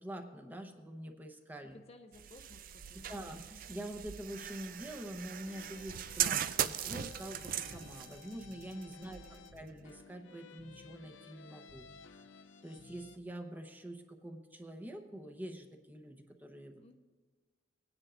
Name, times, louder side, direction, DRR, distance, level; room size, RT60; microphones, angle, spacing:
voice 1, 0.0-1.8 3.1-9.2 9.5-11.9 12.6-16.8, right 1 dB, 10° right, 4 dB, 0.8 m, -46 dB
voice 2, 1.7-3.2 9.0-9.5 16.8-17.0, left 2 dB, 35° left, 6 dB, 0.5 m, -57 dB
sound 1, 2.1-10.0, right 10 dB, 50° right, 0.4 m, -39 dB
sound 2, 5.5-13.2, left 5 dB, 90° left, 0.5 m, -55 dB
20.0 x 9.8 x 2.5 m, 1.4 s
head